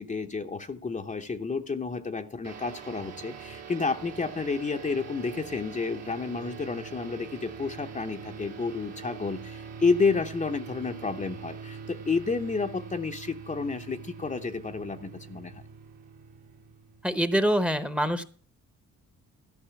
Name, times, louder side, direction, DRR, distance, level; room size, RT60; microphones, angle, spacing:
voice 1, 0.0-15.6, left 4 dB, 25° left, 5 dB, 0.8 m, -30 dB
sound 1, 2.4-17.3, right 6 dB, 60° right, 1.8 m, -43 dB
voice 2, 17.0-18.2, equal, 5° right, 13 dB, 1.0 m, -25 dB
13.5 x 5.4 x 8.2 m, 0.41 s
cardioid pair, 90°, 30 cm